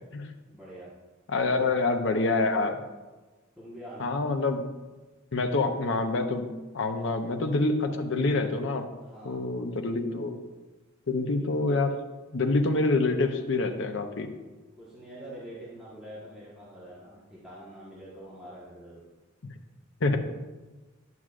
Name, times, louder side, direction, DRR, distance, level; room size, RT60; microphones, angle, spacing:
voice 1, 0.5-0.9 1.5-1.8 3.6-4.1 7.0-7.1 9.0-9.4 14.8-19.0, equal, 5° right, -9 dB, 1.3 m, -45 dB
voice 2, 1.3-2.8 4.0-4.6 5.3-6.5 6.7-8.9 9.2-10.4 11.1-11.9 12.3-14.3 19.4-19.5 20.0-20.2, left 3 dB, 65° left, 6 dB, 0.7 m, -26 dB
11.0 x 6.1 x 2.5 m, 1.2 s
head